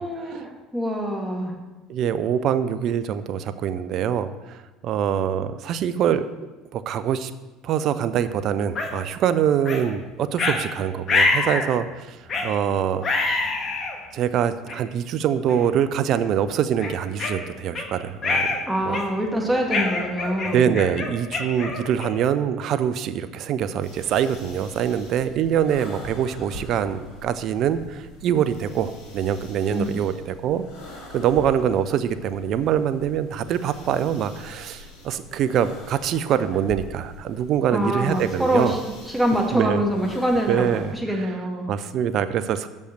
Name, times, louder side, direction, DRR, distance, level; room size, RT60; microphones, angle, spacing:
voice 1, 0.0-1.5 18.7-20.7 29.7-29.9 37.7-40.6 40.9-41.7, right 1 dB, 5° right, 0 dB, 1.7 m, -25 dB
voice 2, 1.9-6.3 6.7-7.3 7.6-12.2 12.4-13.1 14.1-18.5 18.8-19.0 20.4-30.6 31.1-38.7 39.5-39.8 40.5-41.3 41.7-42.7, right 9 dB, 55° right, 13 dB, 0.4 m, -24 dB
sound 1, 8.8-8.9 9.7-9.8 10.4-10.6 11.1-11.7 12.3-12.5 13.0-13.9 14.7-14.8 15.5-15.7 16.1-16.3 16.8-17.9 18.2-18.6 18.9-19.3 19.7-22.3, left 3 dB, 40° left, 1.3 m, -25 dB
sound 2, 23.8-40.9, left 1 dB, 65° left, 2.0 m, -43 dB
6.4 x 5.4 x 6.0 m, 1.1 s
hypercardioid pair, 65°, 0 cm